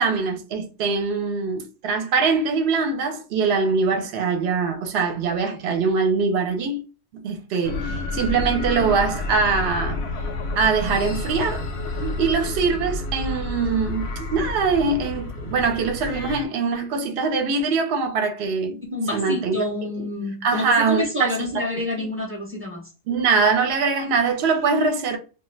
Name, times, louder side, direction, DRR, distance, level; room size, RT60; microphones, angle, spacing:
voice 1, 0.0-6.8 7.1-10.0 10.6-11.6 12.2-18.8 19.1-19.6 20.4-21.7 22.0-22.1 23.1-25.2, right 4 dB, 60° right, 0.8 m, -23 dB
sound 1, 7.6-16.4, left 2 dB, 65° left, 0.7 m, -29 dB
voice 2, 18.9-22.9, left 1 dB, 15° right, 0.5 m, -28 dB
2.4 x 2.3 x 3.1 m
omnidirectional pair, 1.3 m